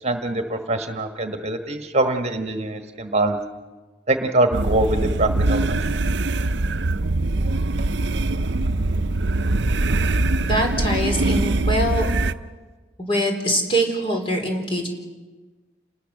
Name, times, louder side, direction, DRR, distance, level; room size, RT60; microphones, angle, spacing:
voice 1, 0.0-3.4 4.1-6.1, right 2 dB, 35° right, 6 dB, 1.5 m, -23 dB
sound 1, 4.5-12.3, right 2 dB, 70° right, 0.7 m, -22 dB
voice 2, 10.4-12.1 13.0-14.9, right 1 dB, 30° left, 2 dB, 4.3 m, -23 dB
28.5 x 20.0 x 6.6 m, 1.3 s
head